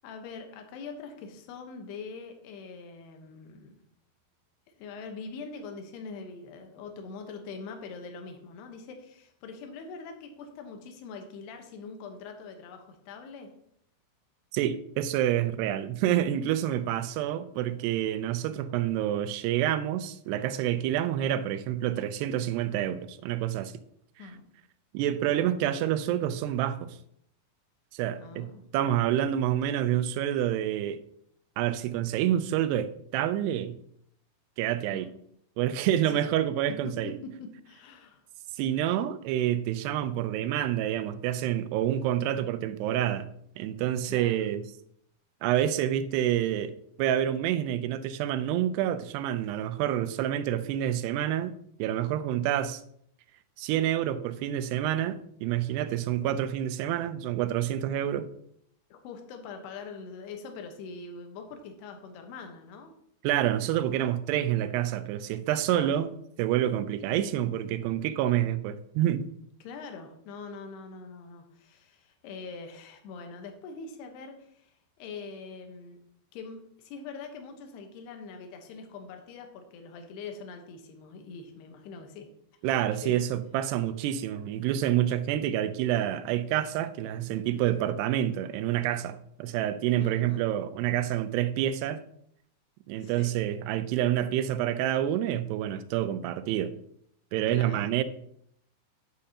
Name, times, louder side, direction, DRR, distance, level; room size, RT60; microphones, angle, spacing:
voice 1, 0.0-3.8 4.7-13.5 24.2-24.4 28.2-28.6 34.9-35.1 36.1-36.2 36.8-38.2 44.1-44.4 58.9-62.9 65.7-66.0 69.6-76.0 76.3-82.3 83.0-83.2 90.0-90.5 92.9-93.4 97.5-97.9, left 4 dB, 80° left, 3.2 m, -43 dB
voice 2, 14.5-23.7 24.9-27.0 27.9-31.0 31.6-33.8 34.6-35.1 35.6-37.1 38.6-43.3 43.6-44.6 45.4-46.7 47.0-51.5 51.8-52.8 53.6-58.3 63.2-66.1 66.4-69.3 82.6-92.0 92.9-96.7 97.3-98.0, right 11 dB, 90° right, 2.7 m, -28 dB
9.9 x 9.6 x 2.9 m
omnidirectional pair, 4.7 m